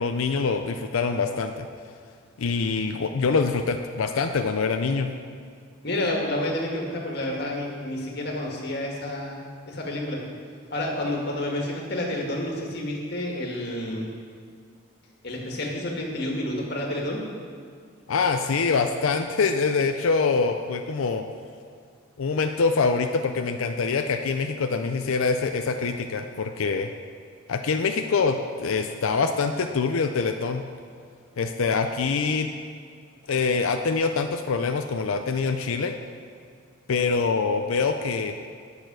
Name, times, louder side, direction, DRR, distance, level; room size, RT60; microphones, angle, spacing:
voice 1, 0.0-1.7 2.4-5.1 18.1-21.2 22.2-26.9 27.5-30.6 31.4-32.5 33.3-35.9 36.9-38.3, left 4 dB, 85° left, 6 dB, 0.5 m, -25 dB
voice 2, 5.8-10.2 10.7-14.1 15.2-17.2, left 1 dB, 50° left, -1 dB, 1.8 m, -29 dB
10.5 x 6.7 x 6.1 m, 2.2 s
head